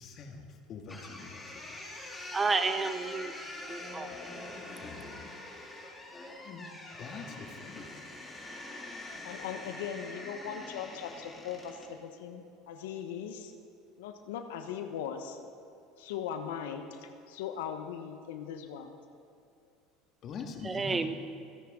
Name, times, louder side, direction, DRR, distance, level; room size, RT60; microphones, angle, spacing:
voice 1, 0.0-1.4 4.7-5.3 6.4-6.7 7.0-7.9 20.2-21.0, left 5 dB, 50° left, 4 dB, 1.9 m, -44 dB
sound 1, 0.9-11.9, left 2 dB, 15° left, 3.5 m, -44 dB
voice 2, 2.3-4.1 20.6-21.1, right 4 dB, 20° right, 9 dB, 0.9 m, -31 dB
voice 3, 9.2-13.5 14.0-15.4 16.0-18.9, left 8 dB, 80° left, 7 dB, 1.1 m, -39 dB
26.5 x 10.5 x 3.8 m, 2.5 s
supercardioid pair, 95°, 0 cm